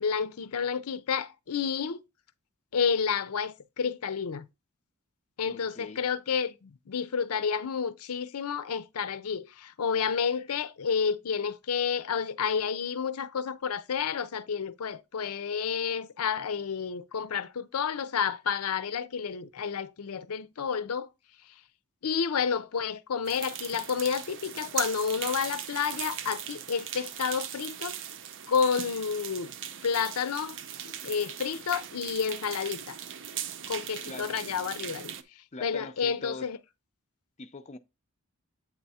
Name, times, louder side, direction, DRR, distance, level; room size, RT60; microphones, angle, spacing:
voice 1, 0.0-2.0 2.7-4.5 5.4-21.1 22.0-28.0 28.4-29.5 29.8-30.6 30.8-33.0 33.7-35.1 35.6-36.6, left 6 dB, 75° left, 0.5 m, -30 dB
voice 2, 5.5-6.0 34.1-34.3 35.5-36.5 37.4-37.8, left 3 dB, 30° left, 0.5 m, -43 dB
sound 1, 23.2-35.2, right 9 dB, 55° right, 0.6 m, -39 dB
8.2 x 3.5 x 4.2 m
head